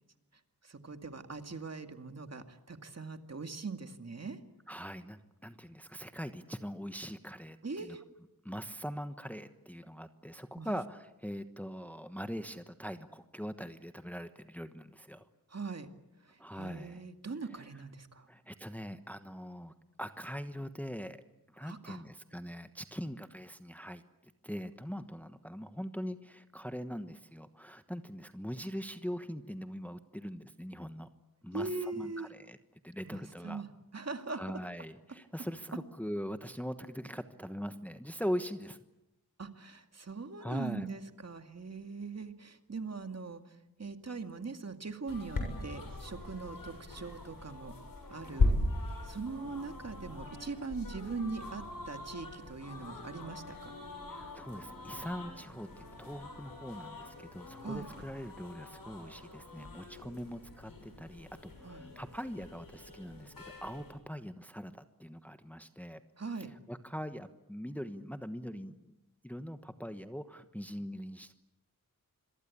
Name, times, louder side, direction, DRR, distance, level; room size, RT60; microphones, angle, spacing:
voice 1, 0.6-4.4 7.6-8.0 10.6-10.7 15.5-15.9 16.2-18.3 21.6-22.0 31.5-32.3 33.1-33.7 33.9-34.6 39.4-47.7 48.1-48.5 49.0-53.7 57.6-57.9 61.6-61.9 66.2-66.5, right 4 dB, 45° right, 7 dB, 2.2 m, -41 dB
voice 2, 4.7-8.0 8.4-15.2 16.4-17.0 18.3-21.2 21.5-24.0 24.4-31.1 31.4-32.6 32.8-33.6 34.3-38.8 40.4-40.9 54.1-66.0 66.7-68.9 69.2-71.3, equal, 5° left, 9 dB, 1.2 m, -42 dB
sound 1, 45.1-63.9, left 2 dB, 75° left, 7.3 m, -39 dB
sound 2, 48.1-56.2, right 2 dB, 65° right, 5.4 m, -58 dB
27.0 x 22.5 x 8.6 m, 0.93 s
wide cardioid pair, 100°, 34 cm